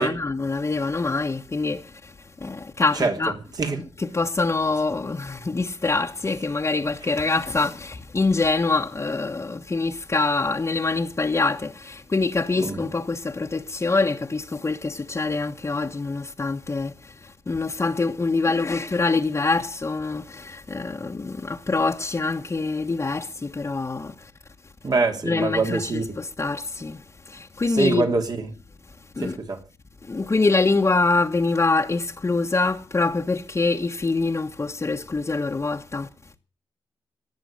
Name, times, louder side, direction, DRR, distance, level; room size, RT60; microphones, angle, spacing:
voice 1, 0.0-2.1 2.4-3.3 4.0-16.9 17.5-24.1 25.2-27.0 27.3-28.1 29.2-29.4 30.1-36.1, left 3 dB, 30° left, 1.4 m, -25 dB
voice 2, 24.8-26.0 27.7-28.5 29.2-29.6, right 3 dB, 50° right, 3.0 m, -24 dB
18.5 x 7.2 x 8.9 m
cardioid pair, 70°, 9 cm